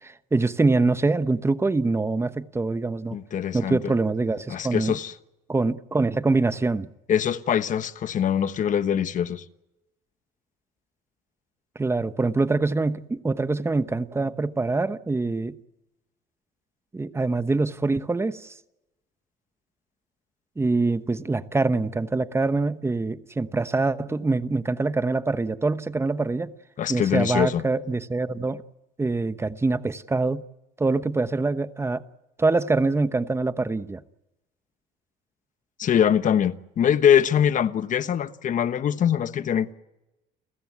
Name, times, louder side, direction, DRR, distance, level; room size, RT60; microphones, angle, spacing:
voice 1, 0.0-3.2 3.5-5.0 5.5-6.9 11.8-15.6 16.9-18.5 20.6-26.5 26.9-28.6 29.0-30.4 30.8-32.0 32.4-34.0, right 3 dB, 15° right, 1.0 m, -24 dB
voice 2, 3.1-3.9 4.5-5.1 7.1-9.4 26.8-27.6 35.8-39.7, left 9 dB, 50° left, 1.2 m, -23 dB
30.0 x 15.0 x 9.6 m
cardioid pair, 110°, 17 cm